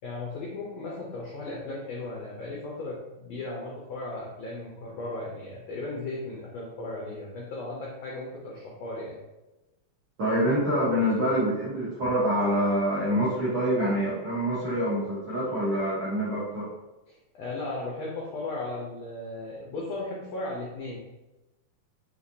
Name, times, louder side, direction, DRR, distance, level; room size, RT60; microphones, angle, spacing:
voice 1, 0.0-9.2 17.1-21.0, left 2 dB, 90° left, -4 dB, 1.4 m, -36 dB
voice 2, 10.2-16.7, equal, 65° right, -11 dB, 1.1 m, -26 dB
5.6 x 3.2 x 2.7 m, 1.0 s
omnidirectional pair, 4.0 m